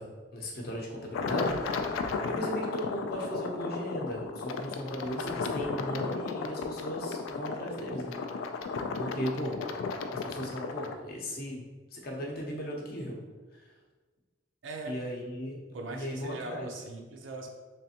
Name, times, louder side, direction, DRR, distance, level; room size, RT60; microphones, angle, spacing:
voice 1, 0.0-8.6 9.0-9.6 10.1-13.2 13.5-13.7 14.8-15.6 15.9-16.7, equal, 50° left, 0 dB, 0.7 m, -37 dB
sound 1, 1.1-11.0, left 4 dB, 90° left, 0.3 m, -34 dB
voice 2, 14.6-14.9 15.7-17.5, right 2 dB, 85° right, 2 dB, 0.6 m, -40 dB
3.4 x 3.2 x 2.8 m, 1.3 s
head